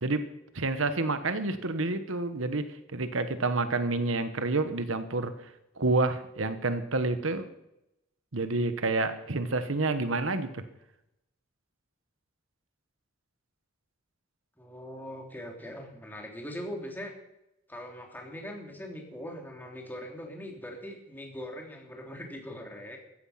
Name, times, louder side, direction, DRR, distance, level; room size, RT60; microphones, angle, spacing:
voice 1, 0.5-5.5 5.8-7.5 8.3-10.6, right 3 dB, 75° right, 10 dB, 1.3 m, -29 dB
voice 2, 14.6-17.1 17.7-23.0, equal, 10° left, 1 dB, 3.1 m, -41 dB
15.0 x 14.5 x 5.8 m, 0.86 s
head